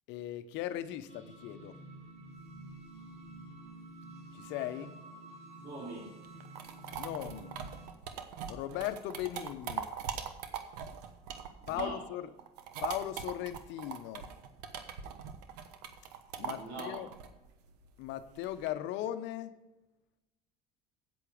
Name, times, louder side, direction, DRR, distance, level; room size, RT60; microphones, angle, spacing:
voice 1, 0.1-1.8 4.3-4.9 7.0-7.5 8.5-9.9 11.7-12.3 12.8-14.3 16.4-17.1 18.0-19.5, left 12 dB, 65° left, 0.9 m, -38 dB
sound 1, 1.1-7.9, right 2 dB, 30° right, 3.8 m, -50 dB
voice 2, 5.6-6.1 11.6-12.0 16.3-17.1, right 2 dB, 60° right, 3.5 m, -43 dB
sound 2, 6.2-12.1 12.4-18.7, right 8 dB, 80° right, 1.1 m, -41 dB
8.7 x 8.4 x 5.1 m
supercardioid pair, 85°, 20 cm